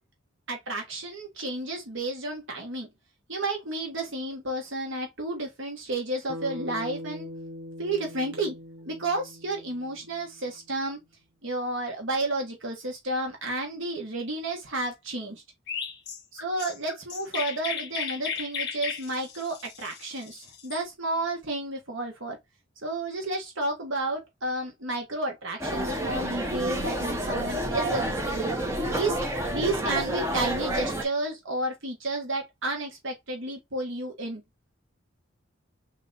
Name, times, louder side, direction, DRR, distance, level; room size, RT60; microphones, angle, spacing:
voice 1, 0.5-2.9 3.3-7.3 7.8-8.5 8.8-11.0 11.4-15.4 16.4-22.4 22.8-28.5 28.9-29.2 29.5-34.4, right 2 dB, 65° right, 1.3 m, -31 dB
Bass guitar, 6.3-10.7, left 1 dB, 90° right, 0.8 m, -41 dB
Chirp tweet, 15.7-20.8, left 6 dB, 55° left, 0.8 m, -35 dB
sound 1, 25.6-31.0, right 1 dB, 15° right, 0.8 m, -29 dB
3.3 x 2.9 x 3.9 m
head